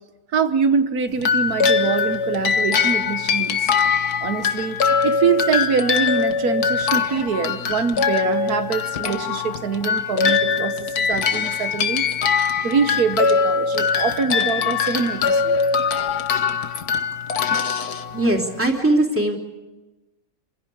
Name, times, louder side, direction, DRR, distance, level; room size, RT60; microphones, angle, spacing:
voice 1, 0.3-3.7 4.2-4.8 5.0-12.1 12.4-15.6, right 6 dB, 80° right, 9 dB, 1.6 m, -24 dB
sound 1, 1.2-18.6, left 6 dB, 85° left, 1.8 m, -22 dB
voice 2, 18.1-19.4, right 1 dB, 10° right, 1 dB, 3.2 m, -20 dB
28.0 x 16.5 x 8.5 m, 1.1 s
omnidirectional pair, 1.6 m